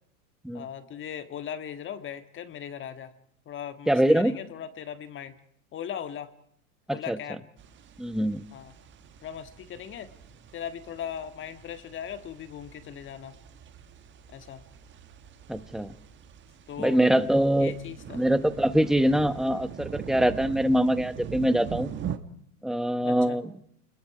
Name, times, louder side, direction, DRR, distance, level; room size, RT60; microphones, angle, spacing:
voice 1, 0.5-3.1 3.5-5.4 5.7-6.3 6.9-7.5 8.5-8.7 9.2-10.1 10.5-13.4 14.3-14.7 16.7-17.0 17.6-18.2 23.0-23.4, left 9 dB, 25° left, 10 dB, 1.8 m, -38 dB
voice 2, 3.9-4.4 6.9-7.2 8.0-8.4 15.5-15.9 16.8-17.7 18.1-21.9 22.6-23.7, right 1 dB, ahead, 13 dB, 0.9 m, -24 dB
sound 1, 7.6-22.2, right 8 dB, 25° right, 1.5 m, -42 dB
29.0 x 21.5 x 4.9 m, 0.71 s
hypercardioid pair, 120°, 44 cm